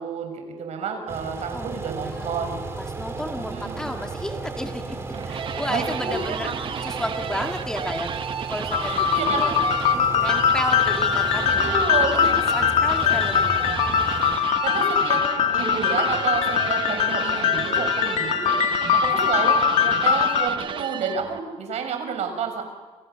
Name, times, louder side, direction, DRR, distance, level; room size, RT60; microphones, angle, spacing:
voice 1, 0.0-2.6 3.4-3.9 5.7-6.6 8.8-9.7 11.4-12.4 14.3-15.3 15.5-22.6, right 5 dB, 70° right, 5 dB, 6.4 m, -30 dB
sound 1, 1.1-14.4, right 3 dB, 20° right, 3.4 m, -34 dB
voice 2, 2.0-6.5 6.8-8.1 8.5-9.5 10.1-11.7 12.5-14.0, equal, 5° left, 3 dB, 2.1 m, -32 dB
sound 2, 4.9-21.4, right 7 dB, 45° right, 1.1 m, -33 dB
sound 3, 8.7-20.5, left 8 dB, 80° left, 2.0 m, -22 dB
29.5 x 29.0 x 7.0 m, 1.3 s
cardioid pair, 155°, 12 cm